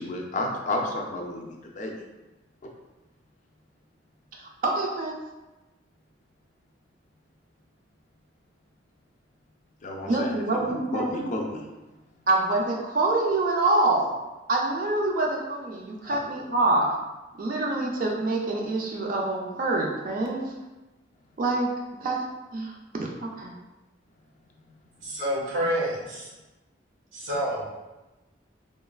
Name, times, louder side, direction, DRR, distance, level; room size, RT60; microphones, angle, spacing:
voice 1, 0.0-1.9 2.6-2.7 9.8-11.6 16.0-16.2, left 2 dB, 40° left, 1 dB, 0.3 m, -32 dB
voice 2, 4.3-5.1 10.1-11.2 12.3-14.1 14.5-16.9 17.4-20.5 21.4-21.7 22.0-22.2 22.5-23.5, right 2 dB, 45° right, -1 dB, 0.3 m, -26 dB
voice 3, 25.0-26.3 27.1-27.6, equal, 85° right, -4 dB, 0.8 m, -28 dB
3.1 x 2.3 x 2.3 m, 1.1 s
head